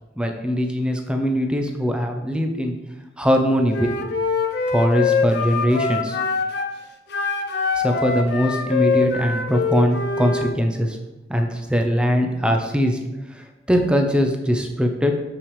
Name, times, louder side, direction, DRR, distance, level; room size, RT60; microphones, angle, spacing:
voice 1, 0.2-2.7 3.2-3.9 4.7-6.2 7.8-11.0 11.3-13.0 13.3-15.1, equal, 5° right, 4 dB, 0.6 m, -21 dB
Wind instrument woodwind instrument, 3.7-6.7 7.1-10.5, left 4 dB, 55° left, 0.6 m, -24 dB
6.9 x 5.9 x 3.2 m, 1.0 s
head